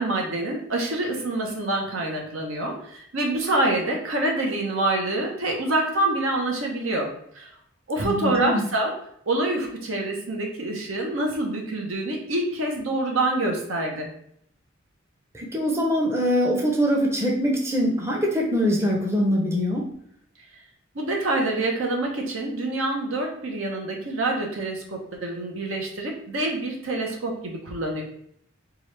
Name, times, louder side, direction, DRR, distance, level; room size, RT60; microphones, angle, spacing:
voice 1, 0.0-7.1 7.3-7.5 7.9-8.9 9.3-14.1 20.9-28.0, right 2 dB, 80° right, 1 dB, 0.9 m, -26 dB
voice 2, 8.0-8.7 15.3-19.9, equal, 15° right, -1 dB, 0.6 m, -23 dB
4.7 x 2.4 x 3.2 m, 0.69 s
head